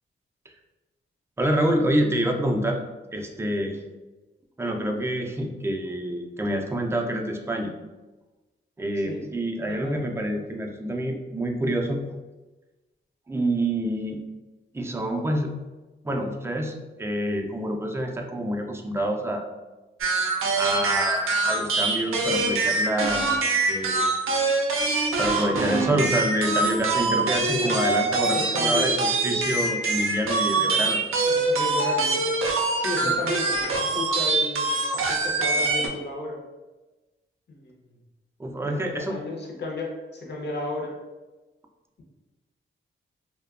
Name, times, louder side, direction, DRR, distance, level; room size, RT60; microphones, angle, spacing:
voice 1, 1.4-2.8 3.1-3.8 4.6-7.7 8.8-12.0 13.3-14.3 14.7-15.5 16.0-19.4 20.5-23.3 23.7-24.2 25.2-31.0 33.0-33.1 38.4-39.2, right 1 dB, 10° right, 2 dB, 0.3 m, -27 dB
sound 1, 20.0-35.9, right 3 dB, 80° right, 0.4 m, -24 dB
voice 2, 28.2-28.9 30.5-30.7 31.3-32.3 32.7-36.4 37.5-38.0 38.6-41.0, left 2 dB, 55° left, -1 dB, 0.6 m, -33 dB
2.7 x 2.1 x 2.4 m, 1.1 s
cardioid pair, 75°, 21 cm